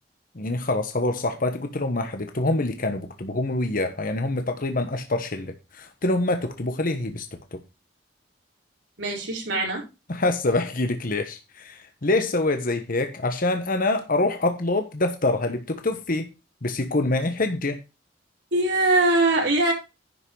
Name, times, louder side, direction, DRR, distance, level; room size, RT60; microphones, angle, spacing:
voice 1, 0.3-7.2 7.5-7.6 10.1-16.3 16.6-17.8, left 2 dB, 50° left, 1.2 m, -25 dB
voice 2, 9.0-9.8 18.5-19.7, right 2 dB, 80° right, 4.7 m, -21 dB
11.0 x 5.9 x 4.7 m
head